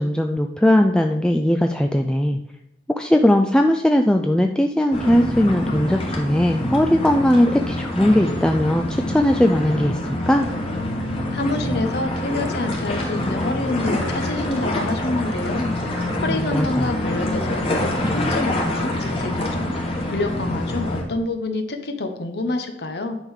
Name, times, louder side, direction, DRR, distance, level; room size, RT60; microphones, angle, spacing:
voice 1, 0.0-2.4 2.9-10.0 10.3-10.5 16.3-16.9, left 1 dB, 5° left, 4 dB, 0.3 m, -19 dB
sound 1, 4.9-21.0, left 1 dB, 30° left, 1.7 m, -26 dB
voice 2, 11.3-15.7 16.2-19.7 20.1-23.2, left 2 dB, 65° left, 6 dB, 0.9 m, -27 dB
9.9 x 3.7 x 6.4 m, 0.85 s
head